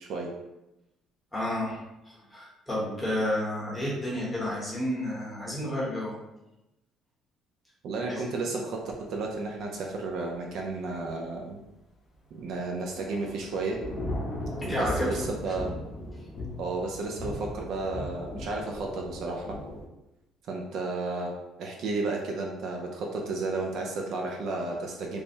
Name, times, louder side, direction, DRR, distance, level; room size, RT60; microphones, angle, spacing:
voice 1, 0.0-0.3 7.8-11.6 12.3-13.8 14.8-15.7 16.6-19.6 20.5-21.3 21.6-25.2, right 3 dB, 55° right, 0 dB, 0.5 m, -32 dB
voice 2, 1.3-6.2 8.1-8.3 14.6-15.2, left 1 dB, 5° left, -6 dB, 1.0 m, -31 dB
Thunder / Rain, 12.5-19.9, left 1 dB, 25° left, 0.7 m, -37 dB
3.3 x 2.1 x 4.3 m, 0.94 s
cardioid pair, 170°, 0 cm